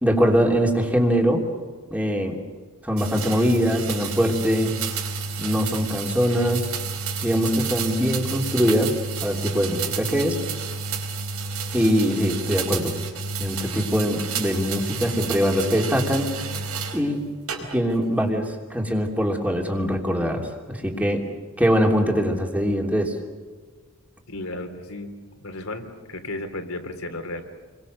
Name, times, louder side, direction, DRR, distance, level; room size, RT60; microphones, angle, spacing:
voice 1, 0.0-1.5 1.9-2.4 2.8-4.7 5.4-6.7 7.2-8.9 9.2-10.4 11.7-12.9 13.4-16.3 16.9-17.2 17.7-21.2 21.6-23.1, equal, 5° right, 1 dB, 3.1 m, -22 dB
sound 1, 3.0-17.0 17.5-18.0, right 4 dB, 90° right, 4.6 m, -30 dB
voice 2, 24.3-25.1 25.4-27.4, left 2 dB, 75° left, 6 dB, 3.3 m, -34 dB
29.0 x 23.5 x 6.7 m, 1.5 s
head